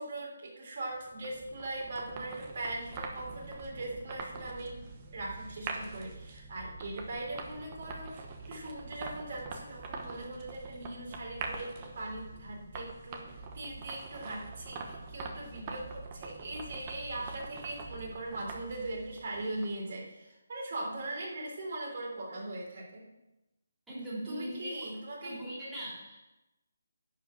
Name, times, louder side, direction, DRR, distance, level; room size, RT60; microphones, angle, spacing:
voice 1, 0.0-4.8 5.1-23.0 24.3-25.4, right 2 dB, 45° right, -3 dB, 3.9 m, -40 dB
sound 1, 0.9-19.9, right 4 dB, 25° right, 1.0 m, -44 dB
voice 2, 23.9-24.7 25.2-26.2, right 1 dB, 5° right, -11 dB, 3.2 m, -40 dB
11.0 x 5.1 x 7.6 m, 0.97 s
hypercardioid pair, 170°, 0 cm